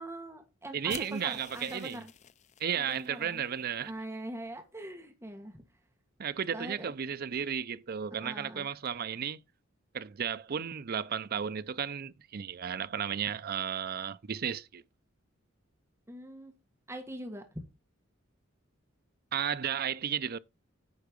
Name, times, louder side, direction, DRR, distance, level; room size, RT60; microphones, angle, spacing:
voice 1, 0.0-2.1 2.7-3.4 3.8-5.6 6.5-7.2 8.2-8.7 16.1-16.5 16.9-17.4, right 1 dB, 15° right, 1.6 m, -43 dB
voice 2, 0.7-2.0 2.6-3.9 6.2-9.4 9.9-14.8 19.3-20.4, right 8 dB, 50° right, 0.5 m, -34 dB
sound 1, 0.9-3.1, left 9 dB, 35° left, 0.4 m, -49 dB
9.6 x 4.6 x 5.2 m
head